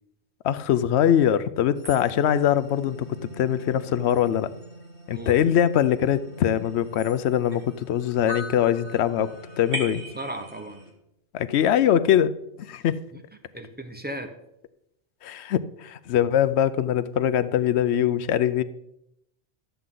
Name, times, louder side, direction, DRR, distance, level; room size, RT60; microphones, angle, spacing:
voice 1, 0.4-4.5 5.1-10.0 11.3-12.3 12.6-13.0 15.2-18.6, left 10 dB, 70° left, 14 dB, 0.8 m, -22 dB
sound 1, 1.8-10.9, equal, 50° right, 2.1 m, -40 dB
voice 2, 10.1-10.9 13.1-13.2 13.5-14.3, right 1 dB, 10° right, 5 dB, 0.8 m, -36 dB
12.5 x 7.9 x 3.8 m, 0.82 s
omnidirectional pair, 1.2 m